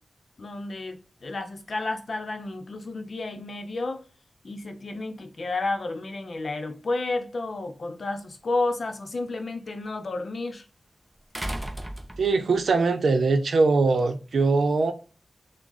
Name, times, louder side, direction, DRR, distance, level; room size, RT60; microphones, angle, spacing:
voice 1, 0.4-4.0 4.4-10.6, left 2 dB, 55° left, 0.7 m, -31 dB
sound 1, 8.1-8.2 11.3-12.6 14.0-14.1, right 1 dB, 10° right, 0.6 m, -34 dB
voice 2, 12.2-14.9, right 3 dB, 90° right, 0.6 m, -22 dB
6.1 x 2.1 x 3.9 m
wide cardioid pair, 130°, 0 cm